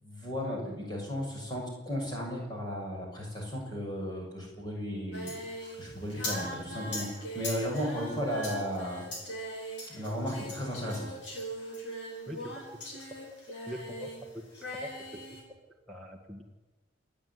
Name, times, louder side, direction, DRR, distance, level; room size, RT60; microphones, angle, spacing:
voice 1, 0.0-5.4 5.8-7.1 7.3-9.0 9.9-11.1, equal, 20° left, -2 dB, 7.0 m, -35 dB
Singing, 5.1-14.2 14.5-15.4, equal, 60° left, 7.5 m, -40 dB
voice 2, 12.3-12.7 12.9-13.0 13.7-14.1 14.8-15.2 15.9-16.4, equal, ahead, 0 dB, 1.9 m, -42 dB
29.0 x 9.8 x 9.8 m, 1.2 s
head